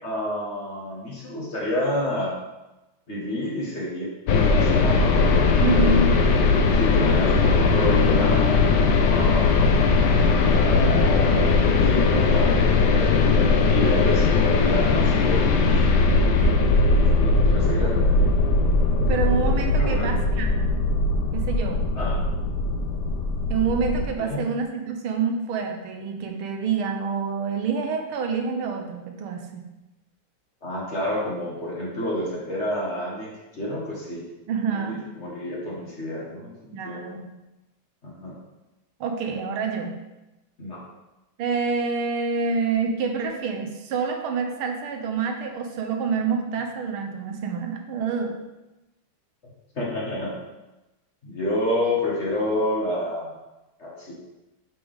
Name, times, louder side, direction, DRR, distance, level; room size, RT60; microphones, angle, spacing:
voice 1, 0.0-2.3 3.1-5.2 5.8-6.2 6.7-8.6 8.9-9.6 10.4-13.1 13.7-15.6 16.1-18.4 19.7-20.1 22.0-22.2 24.2-24.5 30.6-34.2 34.7-37.1 38.0-38.4 40.6-40.8 49.7-50.3 51.2-53.3 53.8-54.2, left 1 dB, 35° left, -5 dB, 1.6 m, -29 dB
sound 1, 4.3-24.1, left 3 dB, 70° left, 1.1 m, -19 dB
voice 2, 5.6-6.2 16.4-16.8 19.1-20.8 21.3-21.8 23.5-29.7 34.5-35.0 36.7-37.4 39.0-39.9 41.4-48.4, right 5 dB, 85° right, 4 dB, 1.7 m, -27 dB
8.9 x 4.7 x 3.5 m, 1.0 s
omnidirectional pair, 2.3 m